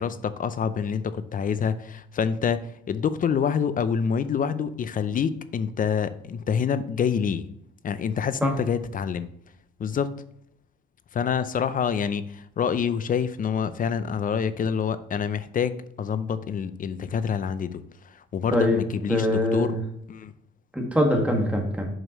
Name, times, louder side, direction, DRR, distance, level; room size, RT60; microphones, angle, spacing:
voice 1, 0.0-7.5 7.8-9.3 9.8-10.1 11.1-17.8 18.3-19.8 20.1-20.3, left 7 dB, 45° left, 0.5 m, -27 dB
voice 2, 18.5-18.8 19.1-19.8 20.7-21.9, equal, 5° right, 1.8 m, -23 dB
7.3 x 5.1 x 3.1 m
cardioid pair, 90°, 20 cm